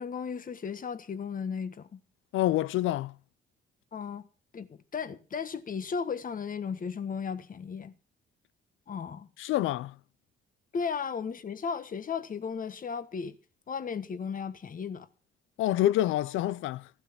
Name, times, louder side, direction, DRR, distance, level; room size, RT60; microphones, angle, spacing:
voice 1, 0.0-2.0 3.9-4.3 4.5-7.9 8.9-9.3 10.7-13.4 13.7-15.1, left 6 dB, 45° left, 1.5 m, -35 dB
voice 2, 2.3-3.2 9.4-10.0 15.6-16.9, left 14 dB, 85° left, 0.6 m, -27 dB
15.5 x 11.5 x 6.0 m
cardioid pair, 90°, 20 cm